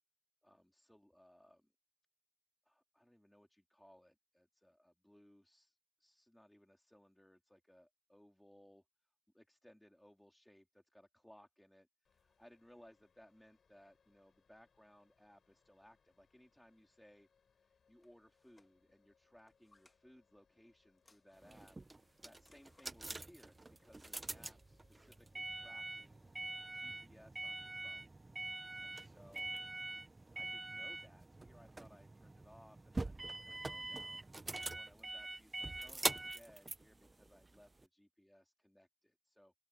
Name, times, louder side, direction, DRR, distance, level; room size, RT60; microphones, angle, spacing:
voice 1, 0.4-1.7 2.6-8.8 9.3-17.3 17.6-26.2 26.7-28.1 28.8-29.6 30.3-39.5, equal, 5° left, 3.2 m, -64 dB
sound 1, 12.0-26.8, left 6 dB, 50° left, 5.4 m, -77 dB
sound 2, 18.0-18.7 19.3-20.0 21.0-21.7 22.4-22.9 23.8-24.4, left 2 dB, 20° left, 2.0 m, -71 dB
sound 3, 21.4-37.8, right 2 dB, 20° right, 0.5 m, -44 dB
open air
wide cardioid pair, 135°, 0 cm